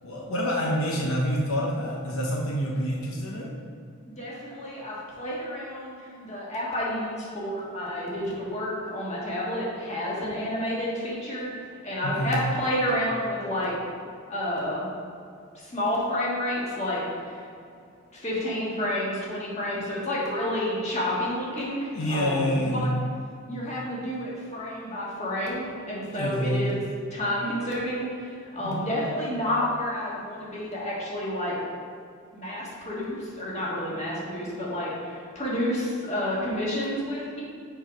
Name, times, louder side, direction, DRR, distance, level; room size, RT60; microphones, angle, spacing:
voice 1, 0.0-3.5 12.0-12.4 21.9-22.9 26.0-26.8 28.6-28.9 33.9-34.0, equal, 80° left, -2 dB, 0.8 m, -27 dB
voice 2, 4.1-11.5 11.8-13.7 14.3-14.9 15.6-17.4 18.1-22.9 23.5-26.8 27.1-31.6 32.3-37.4, left 1 dB, 30° left, -6 dB, 1.5 m, -30 dB
6.2 x 4.6 x 5.1 m, 2.3 s
head